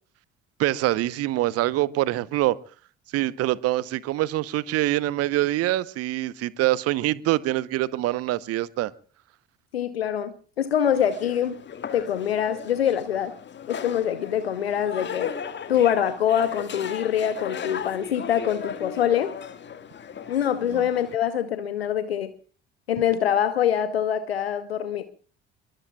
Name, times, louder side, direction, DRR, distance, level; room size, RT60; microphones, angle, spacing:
voice 1, 0.6-2.6 3.1-8.9 20.7-20.9, right 16 dB, 55° right, 0.9 m, -25 dB
voice 2, 9.7-11.6 11.9-13.3 13.7-15.3 15.7-19.3 20.3-22.3 22.9-25.0, left 9 dB, 80° left, 0.9 m, -24 dB
sound 1, 10.8-21.2, left 7 dB, 40° left, 1.8 m, -37 dB
27.5 x 22.5 x 2.3 m
figure-of-eight pair, 55°, 30 cm